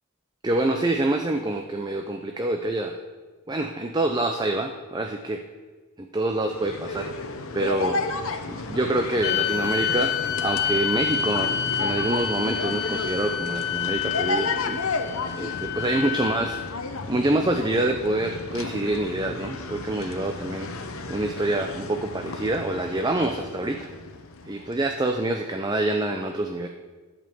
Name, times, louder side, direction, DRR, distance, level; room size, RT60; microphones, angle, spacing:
voice 1, 0.4-3.0 3.5-5.4 6.0-7.1 7.5-14.8 15.4-16.6 17.1-20.7 21.1-23.9 24.4-26.7, right 2 dB, 20° right, 4 dB, 0.4 m, -26 dB
sound 1, 6.4-24.9, left 3 dB, 75° left, 0.8 m, -33 dB
sound 2, 9.2-16.7, left 9 dB, 50° left, 0.4 m, -28 dB
11.0 x 5.3 x 7.2 m, 1.3 s
head